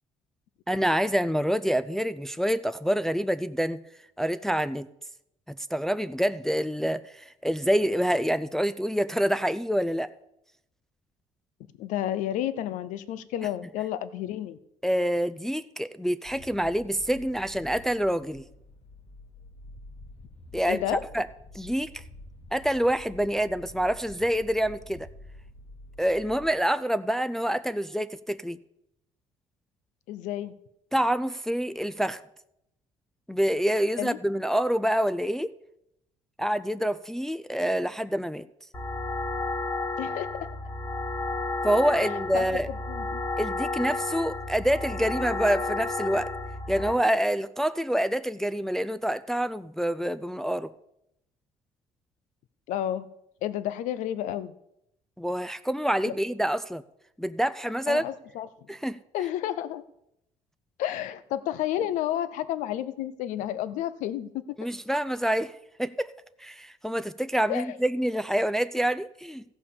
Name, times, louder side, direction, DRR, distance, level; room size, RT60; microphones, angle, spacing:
voice 1, 0.7-3.8 4.2-4.9 5.5-10.1 14.8-18.4 20.5-20.8 21.1-21.3 21.5-22.0 22.5-25.1 26.0-28.6 30.9-32.2 33.3-35.5 36.4-38.5 41.6-42.7 43.4-46.3 46.7-50.7 55.2-56.8 57.2-58.0 58.7-59.0 64.6-66.1 66.4-69.4, equal, 5° left, 12 dB, 0.4 m, -27 dB
voice 2, 11.8-14.6 20.7-21.0 30.1-30.5 34.0-34.2 40.0-40.3 42.3-42.6 42.9-43.2 52.7-53.1 53.4-54.5 56.0-56.1 57.9-58.5 59.1-59.8 60.8-64.3 67.5-67.8, left 12 dB, 85° left, 15 dB, 0.7 m, -31 dB
sound 1, 16.2-26.6, left 1 dB, 65° left, 2.1 m, -48 dB
sound 2, 38.7-46.9, left 3 dB, 25° left, 1.9 m, -32 dB
15.0 x 5.4 x 6.9 m, 0.81 s
cardioid pair, 115°, 13 cm